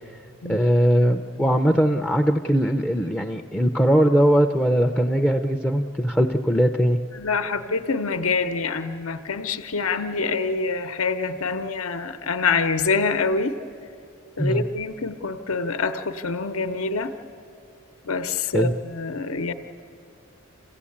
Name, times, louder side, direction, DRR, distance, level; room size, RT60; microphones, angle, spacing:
voice 1, 0.5-7.0 14.4-14.6 18.5-18.7, equal, 5° left, 4 dB, 0.4 m, -20 dB
voice 2, 7.1-13.6 14.4-17.1 18.0-19.5, left 4 dB, 85° left, 9 dB, 0.9 m, -26 dB
27.5 x 16.0 x 8.6 m, 2.5 s
head